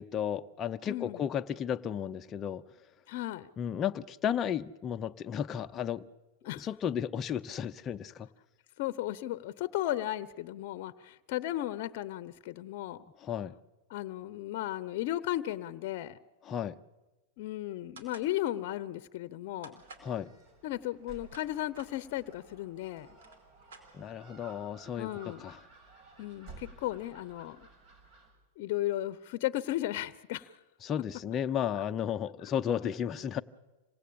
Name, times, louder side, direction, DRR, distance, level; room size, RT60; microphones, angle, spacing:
voice 1, 0.0-2.6 3.6-6.0 6.6-8.3 13.2-13.6 16.4-16.8 20.0-20.3 23.9-25.6 30.8-33.4, left 9 dB, 25° left, 7 dB, 0.8 m, -33 dB
voice 2, 0.9-1.2 3.1-3.5 6.4-6.7 8.8-13.0 13.9-16.2 17.4-19.7 20.6-23.1 25.0-25.5 26.2-27.7 28.6-30.5, left 14 dB, 55° left, 14 dB, 0.9 m, -35 dB
sound 1, 18.0-18.3 19.6-20.1 21.0-21.9 22.8-22.9 23.1-24.3, right 4 dB, 80° right, 5.0 m, -52 dB
Gull seagull, 19.8-28.3, right 4 dB, 40° right, 6.7 m, -55 dB
26.5 x 18.5 x 8.7 m, 1.1 s
hypercardioid pair, 130°, 0 cm